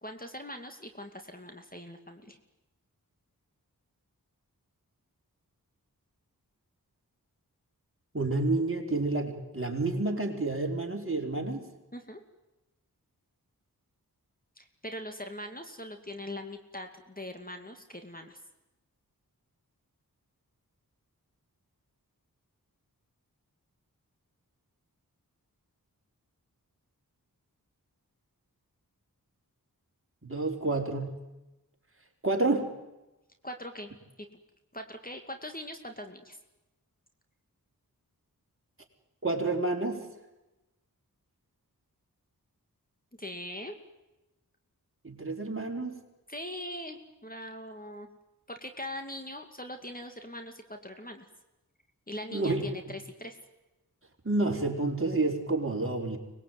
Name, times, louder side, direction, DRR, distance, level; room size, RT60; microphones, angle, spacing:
voice 1, 0.0-2.4 11.9-12.2 14.6-18.4 33.4-33.9 34.7-36.4 43.2-43.8 46.3-48.1 48.5-51.3 52.1-53.4, left 1 dB, 25° left, 6 dB, 2.6 m, -41 dB
voice 2, 8.1-11.6 30.2-31.2 32.2-32.7 39.2-40.0 45.0-46.0 52.3-52.7 54.2-56.2, right 2 dB, 35° right, 1 dB, 4.9 m, -29 dB
25.0 x 21.0 x 9.6 m, 1.0 s
wide cardioid pair, 50°, 36 cm